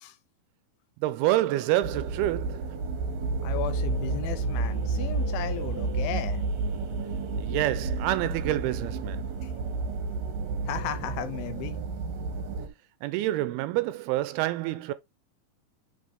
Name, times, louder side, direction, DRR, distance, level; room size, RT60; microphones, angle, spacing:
voice 1, 1.0-2.8 7.4-9.3 13.0-14.9, right 15 dB, 85° right, 2.5 m, -27 dB
sound 1, 1.8-12.7, right 3 dB, 60° right, 2.0 m, -31 dB
voice 2, 3.4-6.4 9.4-9.5 10.7-11.8, left 12 dB, 80° left, 2.4 m, -35 dB
6.4 x 5.0 x 3.5 m
omnidirectional pair, 4.5 m